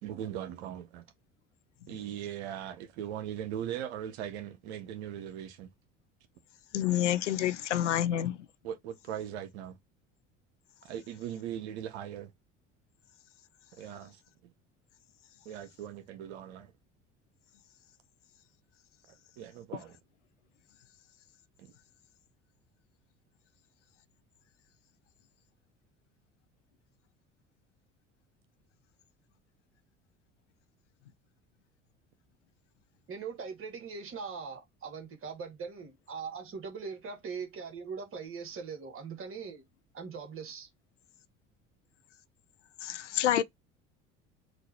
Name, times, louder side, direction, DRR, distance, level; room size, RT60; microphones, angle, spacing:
voice 1, 0.0-1.0 1.9-5.7 7.9-8.3 8.6-9.8 10.8-12.3 13.8-14.5 15.4-16.7 19.4-20.0 21.6-21.7, right 10 dB, 60° right, 0.9 m, -40 dB
voice 2, 6.7-8.3 42.8-43.4, left 11 dB, 75° left, 0.5 m, -28 dB
voice 3, 33.1-39.6 39.9-40.7, right 5 dB, 35° right, 1.8 m, -41 dB
4.1 x 2.5 x 4.2 m
figure-of-eight pair, 65°, 36 cm